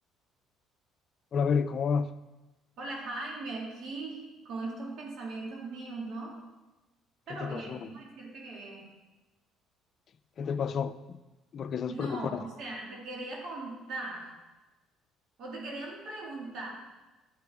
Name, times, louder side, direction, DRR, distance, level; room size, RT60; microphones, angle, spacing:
voice 1, 1.3-2.1 7.3-7.9 10.4-11.2 11.5-12.4, left 6 dB, 50° left, 0.5 m, -30 dB
voice 2, 2.8-6.5 7.3-8.9 11.9-14.4 15.4-16.7, right 2 dB, 60° right, 2.2 m, -39 dB
11.0 x 8.8 x 3.6 m
cardioid pair, 100°, 0 cm